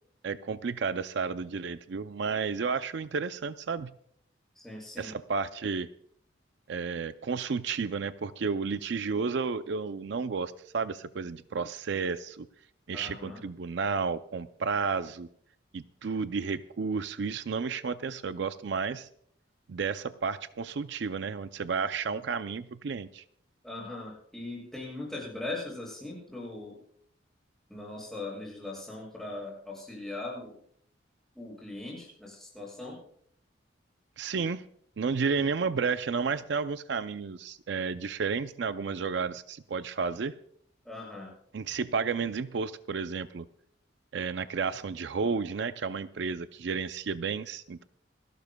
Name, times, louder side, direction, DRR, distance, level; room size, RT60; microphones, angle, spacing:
voice 1, 0.2-3.9 5.0-5.9 6.7-12.5 12.9-15.3 15.7-19.1 19.7-23.2 34.2-34.6 35.0-40.3 41.5-43.4 44.1-47.8, right 5 dB, 65° right, 12 dB, 0.4 m, -32 dB
voice 2, 4.6-5.1 12.9-13.4 23.6-26.8 27.7-30.6 31.3-33.0 40.8-41.3, left 2 dB, ahead, -3 dB, 6.4 m, -40 dB
28.5 x 12.0 x 2.2 m, 0.64 s
head